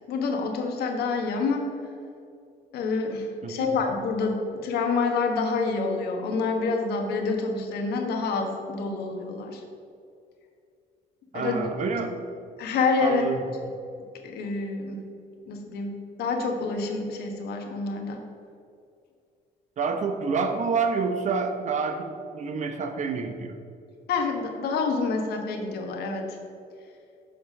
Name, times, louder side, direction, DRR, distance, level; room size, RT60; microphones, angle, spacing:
voice 1, 0.1-1.7 2.7-9.6 11.3-11.6 12.6-13.2 14.2-15.0 15.5-15.9 16.2-18.2 24.1-26.4, left 4 dB, 70° left, 3 dB, 1.3 m, -27 dB
voice 2, 11.3-12.2 13.0-13.4 19.8-23.6, right 5 dB, 45° right, 6 dB, 0.9 m, -28 dB
7.0 x 5.7 x 5.3 m, 2.4 s
cardioid pair, 110°, 17 cm